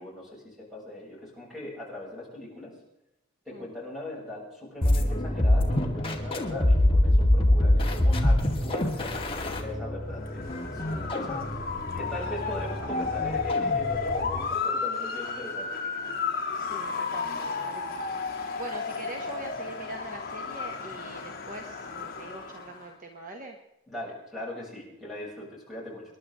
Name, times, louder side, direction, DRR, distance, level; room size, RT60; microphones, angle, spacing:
voice 1, 0.0-2.7 3.5-11.5 11.9-16.1 23.9-26.0, left 2 dB, ahead, -5 dB, 7.4 m, -40 dB
sound 1, 4.8-14.5, left 1 dB, 25° left, 2.3 m, -25 dB
Motor vehicle (road) / Siren, 10.1-22.8, left 5 dB, 45° left, 2.9 m, -33 dB
voice 2, 10.8-11.2 16.5-23.6, right 2 dB, 40° right, 1 dB, 1.6 m, -43 dB
28.0 x 11.5 x 3.8 m, 0.91 s
head